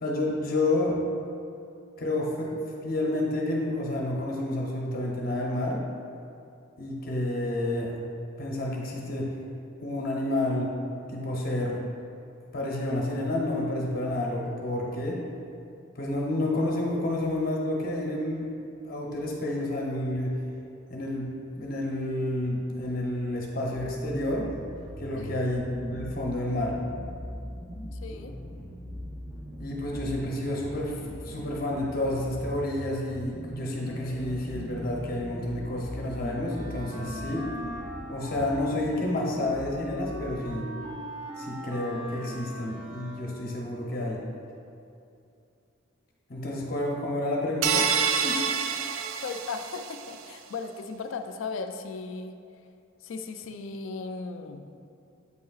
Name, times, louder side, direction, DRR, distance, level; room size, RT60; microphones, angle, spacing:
voice 1, 0.0-1.0 2.0-2.6 2.8-5.8 6.8-8.0 8.4-9.3 9.8-10.7 11.1-11.8 12.5-15.2 15.9-18.5 18.8-20.3 20.9-21.3 21.6-24.5 25.0-26.8 29.6-37.5 38.1-40.7 41.4-44.2 46.3-47.9 48.2-48.4, left 1 dB, 45° left, -2 dB, 0.8 m, -30 dB
sound 1, 23.7-40.6, equal, ahead, 0.6 m, -41 dB
voice 2, 27.9-28.3 49.2-52.4 53.0-54.6, left 4 dB, 70° left, 7 dB, 0.4 m, -36 dB
Wind instrument woodwind instrument, 36.5-43.6, equal, 20° right, 1.0 m, -41 dB
sound 2, 47.6-50.1, right 6 dB, 75° right, 0.4 m, -27 dB
7.9 x 5.6 x 2.4 m, 2.6 s
head